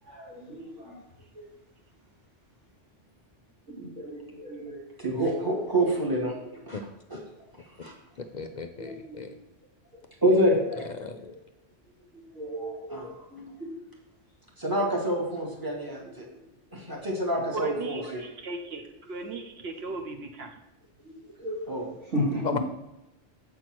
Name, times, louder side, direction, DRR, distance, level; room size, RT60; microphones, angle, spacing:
voice 1, 0.0-1.0 1.3-1.5 3.7-4.9 5.2-5.4 8.8-9.2 9.9-10.0 10.6-10.9 12.3-13.7 14.8-14.9 19.0-19.1 21.0-21.7 22.1-22.5, equal, 75° right, -9 dB, 3.1 m, -36 dB
voice 2, 5.0-6.3 6.7-6.8 7.1-7.2 7.8-7.9 10.2-10.6 12.9-13.0 14.6-16.2 16.7-18.2 21.7-21.9, right 1 dB, 15° right, -3 dB, 2.0 m, -26 dB
voice 3, 8.2-9.3 11.0-11.3 22.4-22.6, left 5 dB, 60° left, 6 dB, 0.4 m, -35 dB
voice 4, 17.5-20.5, right 3 dB, 55° right, 5 dB, 1.2 m, -37 dB
8.2 x 4.3 x 6.1 m, 0.95 s
omnidirectional pair, 1.3 m